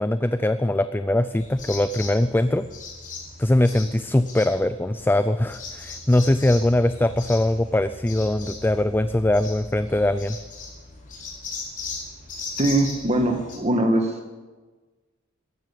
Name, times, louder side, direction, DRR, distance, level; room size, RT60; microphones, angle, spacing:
voice 1, 0.0-2.6 3.4-10.4, left 1 dB, 10° left, 12 dB, 0.4 m, -21 dB
sound 1, 1.4-13.6, left 3 dB, 40° left, 4.9 m, -38 dB
voice 2, 12.6-14.1, right 1 dB, 30° right, 4 dB, 1.5 m, -21 dB
14.0 x 12.5 x 8.3 m, 1.3 s
head